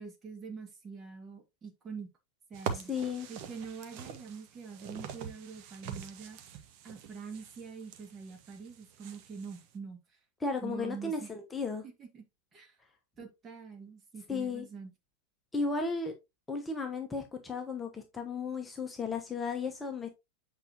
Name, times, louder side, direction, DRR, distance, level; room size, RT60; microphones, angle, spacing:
voice 1, 0.0-2.1 2.5-2.9 3.3-6.4 6.8-10.0 10.6-11.3 11.8-12.3 12.5-12.8 13.2-14.9, right 5 dB, 25° right, 2.0 m, -45 dB
sound 1, 2.5-9.7, right 7 dB, 45° right, 1.1 m, -44 dB
voice 2, 2.9-3.3 10.4-11.9 14.3-14.6 15.5-16.1 16.5-20.1, left 4 dB, 10° left, 1.2 m, -34 dB
8.1 x 5.1 x 2.9 m
figure-of-eight pair, 90°, 0 cm